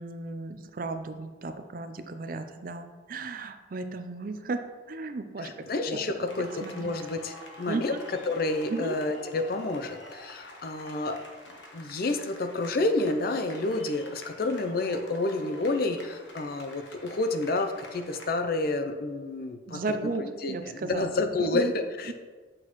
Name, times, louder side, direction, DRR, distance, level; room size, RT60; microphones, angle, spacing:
voice 1, 0.0-5.5 5.9-6.0 6.6-7.0 7.7-8.0 8.7-9.0 19.7-21.1 21.5-21.7 22.1-22.2, right 3 dB, 45° right, 8 dB, 0.4 m, -35 dB
voice 2, 5.4-7.9 8.3-11.2 11.7-19.8 20.2-22.1, left 2 dB, 50° left, 7 dB, 0.5 m, -29 dB
sound 1, 6.3-18.3, left 1 dB, 75° left, 1.1 m, -47 dB
7.6 x 6.1 x 3.0 m, 1.4 s
head